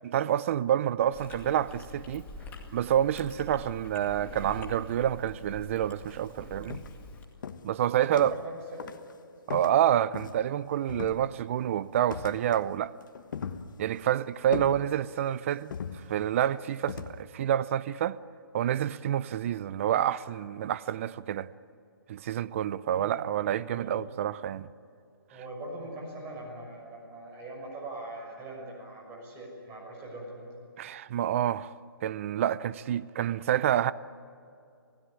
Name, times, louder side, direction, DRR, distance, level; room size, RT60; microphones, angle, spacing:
voice 1, 0.0-2.3 2.7-6.8 7.6-8.3 9.5-12.9 13.8-15.7 16.1-18.2 18.5-21.5 22.1-24.7 30.8-31.7 32.0-33.9, right 11 dB, 35° right, 0.6 m, -28 dB
Chewing mastication, 1.1-7.2, left 2 dB, 15° left, 2.2 m, -45 dB
sound 1, 6.0-6.2 6.7-7.1 7.4-8.5 8.8-9.1 9.5-10.6 10.9-11.6 12.1-12.7 13.0-14.1 14.5-15.3 15.7-16.4 16.9-17.2, left 6 dB, 55° left, 1.3 m, -39 dB
voice 2, 7.9-9.0 22.9-23.3 23.7-24.0 25.3-30.5, right 2 dB, 20° right, 6.3 m, -42 dB
27.0 x 16.5 x 9.9 m
hypercardioid pair, 155°, 13 cm